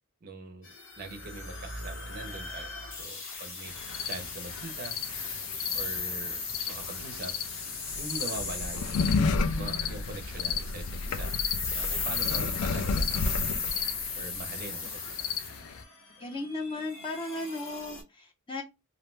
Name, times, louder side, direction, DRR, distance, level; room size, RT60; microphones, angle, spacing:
voice 1, 0.2-0.7 1.0-2.7 3.0-3.7 4.0-5.0 5.7-7.3 8.0-9.1 9.5-11.3 11.7-13.2 14.2-15.3, right 3 dB, 40° right, 0.5 m, -42 dB
sound 1, 0.6-18.0, left 4 dB, 60° left, 0.9 m, -37 dB
sound 2, 3.7-15.8, left 4 dB, 85° left, 0.4 m, -32 dB
voice 2, 16.2-18.6, left 2 dB, 25° left, 0.6 m, -36 dB
2.5 x 2.1 x 3.1 m
head